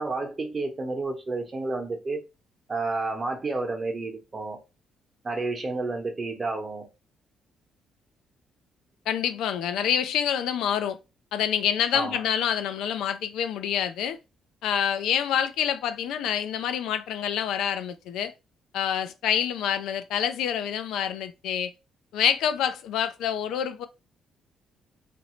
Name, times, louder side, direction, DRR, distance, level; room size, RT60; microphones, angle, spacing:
voice 1, 0.0-2.2 2.7-4.6 5.2-6.9 11.9-12.2, right 3 dB, 35° right, 0.9 m, -30 dB
voice 2, 9.1-11.0 11.3-14.2 14.6-18.3 18.7-21.7 22.1-23.9, left 9 dB, 85° left, 0.4 m, -27 dB
3.0 x 2.5 x 3.0 m
cardioid pair, 90°, 0 cm